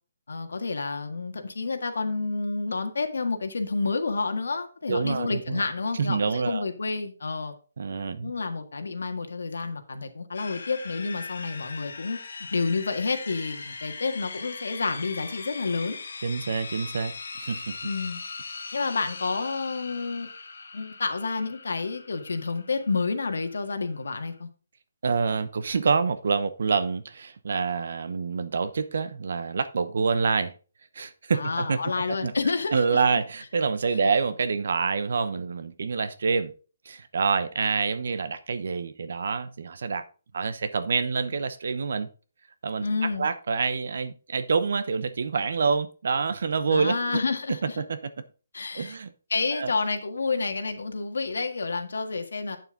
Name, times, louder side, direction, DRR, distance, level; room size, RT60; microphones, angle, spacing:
voice 1, 0.3-7.5 8.2-12.2 12.5-16.0 17.8-18.2 18.7-20.3 20.7-24.5 31.3-33.0 42.8-43.3 46.7-47.8 48.5-49.0 49.3-52.6, left 4 dB, 75° left, 1.7 m, -29 dB
voice 2, 4.9-5.6 5.9-6.6 7.8-8.3 16.2-17.1 17.4-17.8 25.0-30.5 30.9-31.8 32.2-32.3 32.7-36.5 36.8-40.0 40.3-42.1 42.6-42.8 43.2-47.2 47.5-48.0 48.7-49.1 49.5-49.7, right 5 dB, 50° right, 0.9 m, -27 dB
sound 1, 10.3-24.4, left 4 dB, 55° left, 1.7 m, -40 dB
8.7 x 7.1 x 3.8 m
hypercardioid pair, 180°, 0 cm